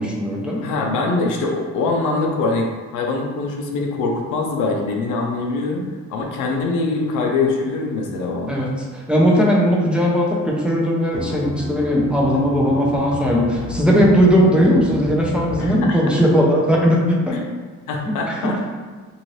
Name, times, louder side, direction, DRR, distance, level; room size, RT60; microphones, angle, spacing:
voice 1, 0.0-0.6 8.5-17.4 18.3-18.5, equal, 5° right, -4 dB, 0.6 m, -18 dB
voice 2, 0.6-8.5 15.6-16.0 17.3-17.4 17.9-18.6, left 3 dB, 90° left, 1 dB, 0.6 m, -23 dB
sound 1, 11.1-15.8, left 2 dB, 55° left, 0.9 m, -32 dB
2.6 x 2.6 x 3.1 m, 1.4 s
cardioid pair, 90°, 30 cm